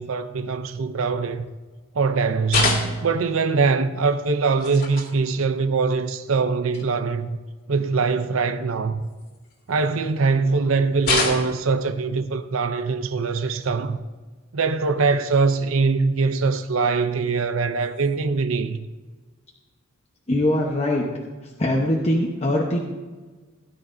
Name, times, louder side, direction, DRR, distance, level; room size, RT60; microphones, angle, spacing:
voice 1, 0.0-1.4 1.9-7.4 7.7-9.0 9.7-14.0 14.5-18.9, right 4 dB, 75° right, 0.6 m, -22 dB
sound 1, 2.5-3.2 4.5-5.1 6.1-6.2 6.7-6.8 9.0-9.8 11.0-11.7 13.4-13.7 15.2-15.4 16.5-16.6 17.8-18.1, left 3 dB, 45° left, 2.1 m, -26 dB
voice 2, 20.3-21.1 21.6-22.8, left 1 dB, 30° left, 1.0 m, -22 dB
17.0 x 10.5 x 2.7 m
head